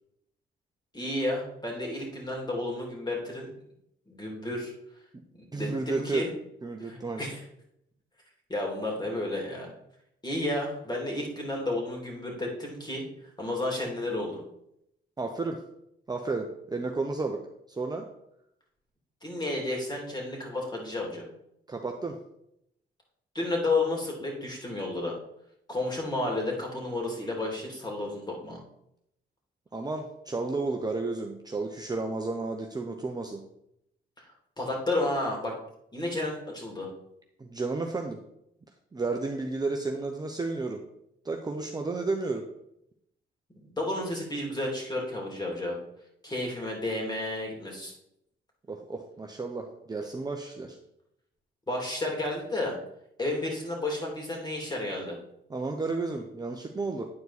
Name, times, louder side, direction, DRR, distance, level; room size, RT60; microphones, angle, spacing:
voice 1, 0.9-3.5 4.1-4.7 5.5-6.3 6.8-7.4 8.5-9.7 10.2-13.0 13.4-14.4 19.2-21.2 23.3-25.2 25.7-28.6 34.6-35.5 35.9-36.9 43.8-45.8 46.2-47.9 51.7-52.7 53.2-55.2, left 2 dB, 20° left, 0 dB, 2.7 m, -31 dB
voice 2, 5.5-6.3 6.6-7.3 15.2-15.6 16.1-17.4 17.7-18.1 21.7-22.2 29.7-33.4 37.4-38.2 38.9-40.8 41.2-42.4 48.7-50.8 55.5-57.0, right 3 dB, 20° right, 2 dB, 0.7 m, -32 dB
9.6 x 4.6 x 4.1 m, 0.77 s
cardioid pair, 90°, 20 cm